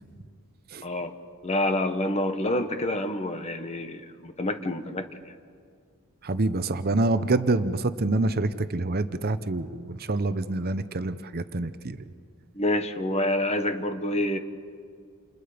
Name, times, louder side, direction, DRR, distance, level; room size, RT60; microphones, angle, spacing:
voice 1, 0.8-1.1 1.4-5.3 12.5-14.4, left 1 dB, 30° left, 8 dB, 1.4 m, -27 dB
voice 2, 6.2-12.0, right 2 dB, 45° right, 11 dB, 0.8 m, -26 dB
29.0 x 29.0 x 5.1 m, 2.2 s
head